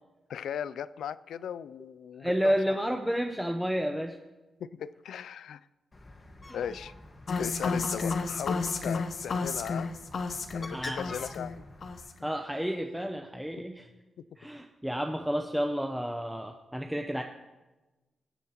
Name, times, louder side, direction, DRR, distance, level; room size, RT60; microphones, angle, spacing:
voice 1, 0.3-2.8 4.6-5.6 6.5-6.9 7.4-9.9 10.2-11.7, left 8 dB, 85° left, 17 dB, 0.3 m, -38 dB
voice 2, 2.2-4.2 6.4-6.6 10.7-11.2 12.2-13.9 14.4-17.2, equal, 5° right, 3 dB, 0.7 m, -31 dB
Bird, 5.9-12.0, left 2 dB, 35° left, 1.6 m, -47 dB
sound 1, 7.3-11.6 11.8-12.2, left 4 dB, 60° left, 0.9 m, -32 dB
20.5 x 7.1 x 3.0 m, 1.1 s
cardioid pair, 70°, 0 cm